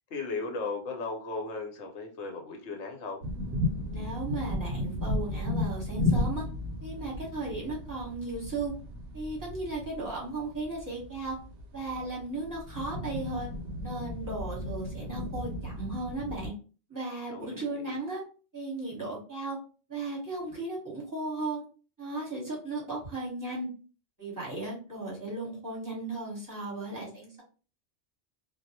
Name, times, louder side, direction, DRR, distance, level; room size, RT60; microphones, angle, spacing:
voice 1, 0.1-3.2 17.3-17.9, left 3 dB, 75° left, 2 dB, 1.0 m, -36 dB
sound 1, 3.2-16.5, left 2 dB, 65° right, 0.7 m, -34 dB
voice 2, 3.9-6.4 6.8-8.7 9.1-11.4 11.7-13.5 13.8-16.5 16.9-18.2 18.5-19.6 19.9-21.6 22.0-23.7 24.2-27.4, right 2 dB, 20° right, -5 dB, 0.9 m, -36 dB
2.2 x 2.0 x 2.7 m, 0.36 s
omnidirectional pair, 1.2 m